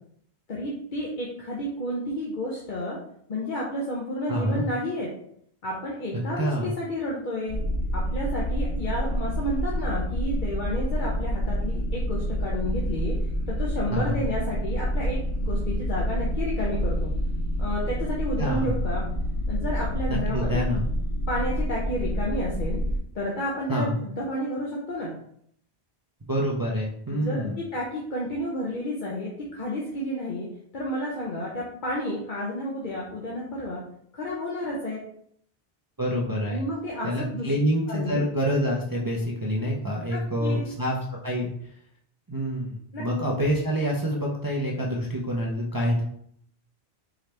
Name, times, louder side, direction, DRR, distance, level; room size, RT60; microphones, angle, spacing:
voice 1, 0.5-3.0 3.3-5.1 5.6-7.6 7.9-13.1 13.5-17.1 17.6-19.0 19.5-20.6 21.3-22.8 23.1-25.1 27.1-30.5 30.7-33.8 34.1-35.0 36.5-37.5 37.9-38.3 40.1-40.6 42.9-43.0, left 1 dB, 50° left, -4 dB, 0.9 m, -31 dB
voice 2, 4.3-4.6 6.4-6.7 13.9-14.2 18.4-18.7 20.1-20.8 23.7-24.0 26.3-27.6 36.0-36.6 37.0-41.0 41.2-41.5 42.3-46.0, equal, 25° right, -4 dB, 0.5 m, -27 dB
sound 1, 7.5-23.0, equal, 80° left, 1.0 m, -28 dB
4.8 x 3.1 x 3.2 m, 0.67 s
omnidirectional pair, 1.1 m